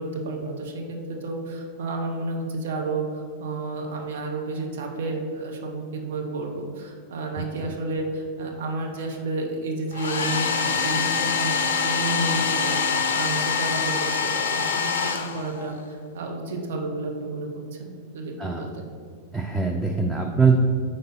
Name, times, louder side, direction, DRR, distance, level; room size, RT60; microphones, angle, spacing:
voice 1, 0.0-18.8, right 2 dB, 60° right, 1 dB, 1.0 m, -31 dB
Domestic sounds home sounds, 9.9-15.8, left 5 dB, 65° left, 0.4 m, -25 dB
voice 2, 19.3-20.6, right 5 dB, 5° right, 0 dB, 0.5 m, -22 dB
5.4 x 3.9 x 5.4 m, 2.2 s
figure-of-eight pair, 90°, 0 cm